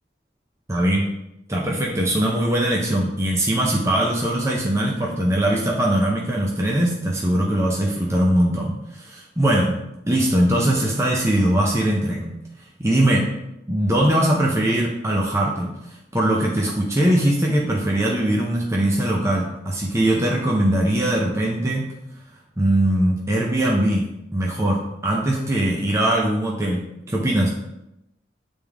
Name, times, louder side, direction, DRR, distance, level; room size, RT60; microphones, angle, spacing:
voice 1, 0.7-1.1 1.5-9.8 10.1-12.3 12.8-13.3 13.7-21.9 22.6-24.0 24.3-27.5, right 1 dB, 15° right, -2 dB, 0.7 m, -21 dB
9.2 x 3.5 x 3.5 m, 0.87 s
head